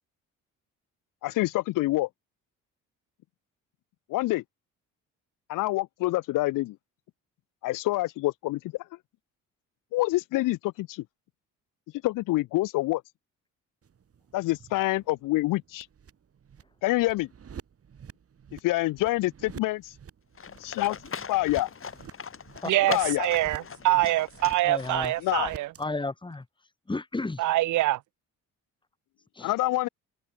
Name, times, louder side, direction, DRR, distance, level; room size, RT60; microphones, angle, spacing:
voice 1, 1.2-2.1 4.1-4.4 5.5-6.8 7.6-8.6 9.9-11.0 12.0-13.0 14.3-15.9 16.8-17.3 18.5-19.9 20.6-21.0 21.3-21.7 22.9-23.3 25.2-25.5 29.4-29.9, left 18 dB, 75° left, 0.5 m, -26 dB
sound 1, 13.8-25.8, right 7 dB, 45° right, 3.4 m, -49 dB
Livestock farm animals working animals, 20.4-25.3, left 6 dB, 40° left, 7.5 m, -40 dB
voice 2, 22.7-25.7 27.4-28.0, right 16 dB, 65° right, 0.5 m, -25 dB
voice 3, 24.6-25.1 25.8-26.5 26.9-27.4 29.3-29.5, left 2 dB, 15° left, 2.1 m, -32 dB
cardioid pair, 95°, 32 cm